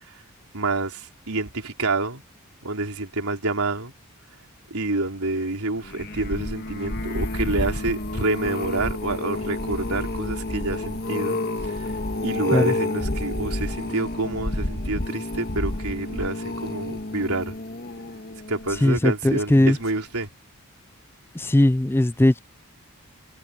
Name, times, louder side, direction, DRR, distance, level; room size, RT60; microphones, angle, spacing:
voice 1, 0.5-2.2 2.6-3.9 4.7-11.4 11.6-11.9 12.2-17.6 18.5-20.3, right 2 dB, 85° right, 3.9 m, -28 dB
sound 1, 5.8-19.1 19.7-20.0 20.2-20.3, left 1 dB, 45° left, 1.7 m, -30 dB
voice 2, 18.8-19.8 21.3-22.4, left 1 dB, 10° left, 0.3 m, -19 dB
head